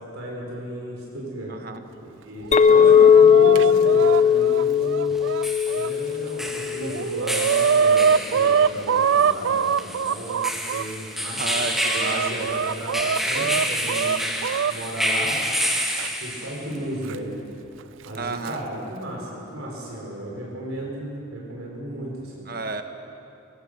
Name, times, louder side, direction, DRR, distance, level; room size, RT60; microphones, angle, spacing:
voice 1, 0.0-1.5 2.2-5.2 5.7-10.4 10.7-14.2 14.7-15.6 16.2-17.3 18.0-22.4, right 1 dB, 85° right, -3 dB, 4.4 m, -34 dB
voice 2, 1.5-1.8 2.7-3.1 11.3-12.5 18.2-18.6 22.5-22.8, right 3 dB, 45° right, 7 dB, 1.2 m, -32 dB
Chicken rooster, 2.4-5.9 6.5-6.6 6.8-10.9 11.5-14.7 16.0-16.1 17.1-17.2 18.2-18.5, right 6 dB, 65° right, 0.4 m, -23 dB
Chink clink, 2.5-7.0, left 7 dB, 30° left, 0.5 m, -17 dB
sound 1, 2.5-2.6 5.2-16.8, equal, ahead, 1.5 m, -29 dB
23.0 x 18.5 x 6.7 m, 2.8 s
head